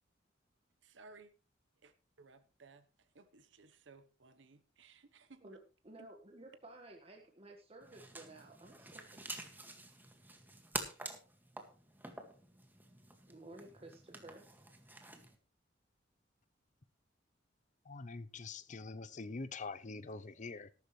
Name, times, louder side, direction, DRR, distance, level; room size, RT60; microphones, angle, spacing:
voice 1, 0.8-1.3 1.8-1.9 2.2-2.8 3.1-5.5 6.0-6.1, right 4 dB, 80° right, 1.1 m, -59 dB
voice 2, 5.8-9.3 13.3-14.5, right 2 dB, 30° right, 1.6 m, -54 dB
sound 1, 7.8-15.4, right 2 dB, 10° right, 1.9 m, -48 dB
voice 3, 17.9-20.7, left 3 dB, 40° left, 0.6 m, -45 dB
14.0 x 12.0 x 3.2 m
head